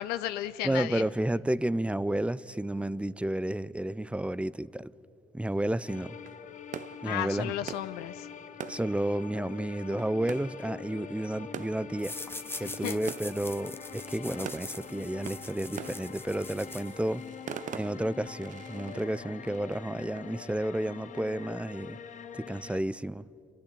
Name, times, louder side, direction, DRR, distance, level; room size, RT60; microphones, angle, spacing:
voice 1, 0.0-1.1 7.0-8.3 12.6-13.0, left 13 dB, 85° left, 0.5 m, -34 dB
voice 2, 0.6-4.9 5.3-6.2 7.0-7.5 8.7-12.2 12.6-17.2 17.7-22.0 22.3-23.3, right 1 dB, 5° right, 0.5 m, -31 dB
sound 1, 5.8-21.5, right 9 dB, 50° right, 0.6 m, -46 dB
sound 2, 5.9-22.8, left 8 dB, 50° left, 0.9 m, -45 dB
sound 3, 12.0-17.3, left 2 dB, 15° left, 1.1 m, -43 dB
27.0 x 12.0 x 8.5 m
supercardioid pair, 60°, 16 cm